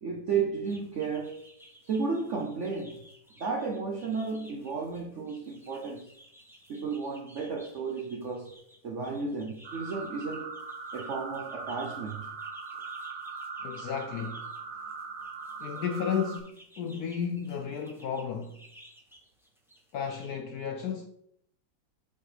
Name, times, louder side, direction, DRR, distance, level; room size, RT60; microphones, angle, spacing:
voice 1, 0.0-1.4 1.8-3.1 3.4-6.1 6.7-8.5 8.8-10.6 10.9-12.3, right 5 dB, 65° right, 0.7 m, -33 dB
sound 1, 0.6-20.3, equal, ahead, 0.9 m, -56 dB
sound 2, 9.6-16.4, right 4 dB, 90° right, 1.8 m, -40 dB
voice 2, 13.6-14.4 15.6-18.6 19.9-21.1, left 7 dB, 75° left, 0.9 m, -33 dB
8.1 x 5.5 x 3.4 m
omnidirectional pair, 2.2 m